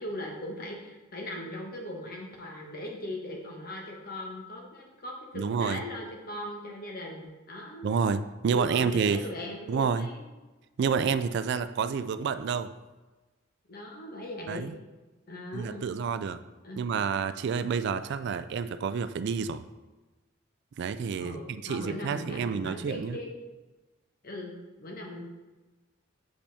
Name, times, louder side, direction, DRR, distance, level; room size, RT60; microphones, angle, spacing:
voice 1, 0.0-7.9 8.5-10.3 13.7-14.7 15.3-15.8 16.6-16.9 21.2-23.3 24.2-24.5 24.8-25.2, left 1 dB, 50° left, 0 dB, 1.2 m, -39 dB
voice 2, 5.3-5.8 7.8-9.2 9.7-10.1 10.8-12.7 14.5-14.7 15.5-16.4 16.8-19.6 20.8-23.2, right 6 dB, 55° right, 12 dB, 0.3 m, -29 dB
6.9 x 5.1 x 3.4 m, 1.2 s
head